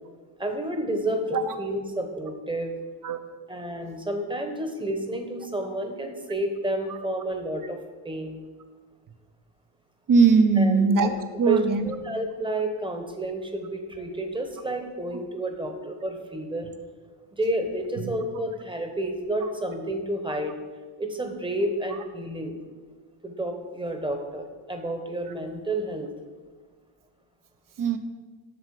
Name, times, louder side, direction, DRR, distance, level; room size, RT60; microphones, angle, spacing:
voice 1, 0.4-2.7 3.5-7.8 8.0-8.4 10.6-11.2 11.5-11.6 11.8-16.7 17.3-20.5 21.0-22.6 23.2-26.1, right 1 dB, 10° right, 5 dB, 1.1 m, -30 dB
voice 2, 10.1-11.9 15.1-15.2 18.0-18.1 19.4-19.5 27.8-28.0, right 4 dB, 45° right, 9 dB, 0.9 m, -21 dB
7.9 x 6.5 x 4.9 m, 1.4 s
cardioid pair, 95°, 46 cm